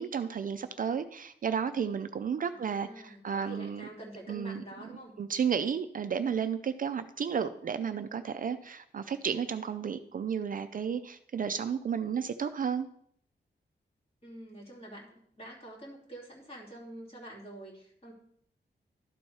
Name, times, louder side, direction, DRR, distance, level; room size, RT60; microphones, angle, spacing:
voice 1, 0.0-3.9 4.3-4.6 5.2-12.9, right 7 dB, 50° right, 10 dB, 0.4 m, -32 dB
voice 2, 2.5-5.1 14.2-15.1 15.4-18.1, right 1 dB, 30° left, -3 dB, 2.8 m, -46 dB
12.0 x 4.2 x 4.6 m, 0.68 s
wide cardioid pair, 160°, 19 cm